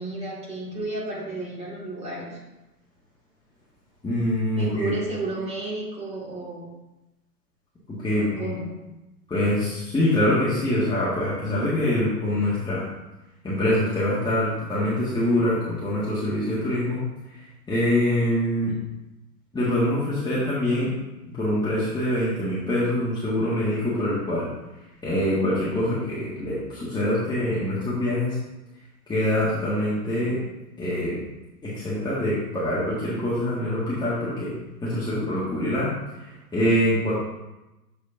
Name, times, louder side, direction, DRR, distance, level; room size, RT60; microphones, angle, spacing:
voice 1, 0.0-2.4 4.6-6.7 8.1-8.7, right 2 dB, 15° right, -6 dB, 2.5 m, -32 dB
voice 2, 4.0-4.9 7.9-8.5 9.3-12.8 13.4-17.0 17.7-18.7 19.5-20.9 21.3-24.5 25.0-28.4 29.1-30.4 30.8-31.2 31.6-34.5 34.8-35.9 36.2-37.1, left 1 dB, 10° left, -9 dB, 1.7 m, -24 dB
7.4 x 6.6 x 2.8 m, 1.0 s
hypercardioid pair, 115°, 49 cm